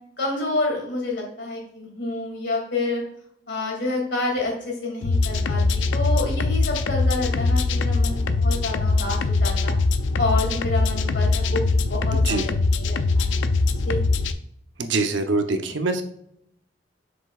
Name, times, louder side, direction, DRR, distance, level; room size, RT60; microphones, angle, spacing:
voice 1, 0.2-3.0 3.5-9.7 10.2-13.4 13.8-14.0, left 2 dB, 65° left, 0 dB, 2.4 m, -28 dB
sound 1, 5.0-14.3, left 3 dB, 85° left, 0.4 m, -22 dB
voice 2, 12.1-12.5 14.8-16.0, right 3 dB, 75° right, 7 dB, 0.8 m, -24 dB
7.3 x 6.2 x 2.4 m, 0.73 s
head